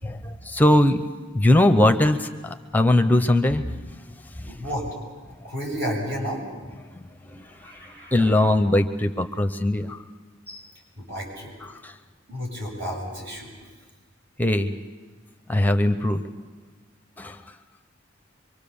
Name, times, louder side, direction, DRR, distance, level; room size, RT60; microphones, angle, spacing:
voice 1, 0.0-1.0 1.3-3.7 4.4-4.5 6.9-7.5 8.1-10.0 10.5-10.7 11.6-11.9 14.4-14.7 15.5-16.2 17.2-17.4, left 1 dB, 10° left, 8 dB, 0.7 m, -21 dB
voice 2, 4.5-4.9 5.4-6.4 7.4-8.3 11.0-11.5 12.3-13.5, equal, 60° right, -1 dB, 7.2 m, -32 dB
25.0 x 24.0 x 7.1 m, 1.3 s
head